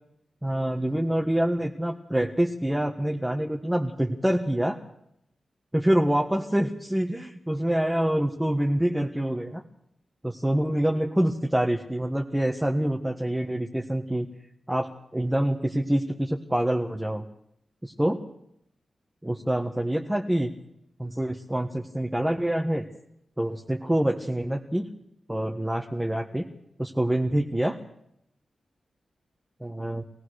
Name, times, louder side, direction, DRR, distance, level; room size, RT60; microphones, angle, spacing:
voice 1, 0.4-4.8 5.7-9.6 10.2-14.3 14.7-17.2 17.8-18.2 19.2-20.5 21.0-22.8 23.4-24.9 25.3-26.5 26.8-27.8 29.6-30.0, right 1 dB, 5° right, 1 dB, 1.6 m, -26 dB
24.5 x 17.5 x 6.6 m, 0.76 s
wide cardioid pair, 100°, 0 cm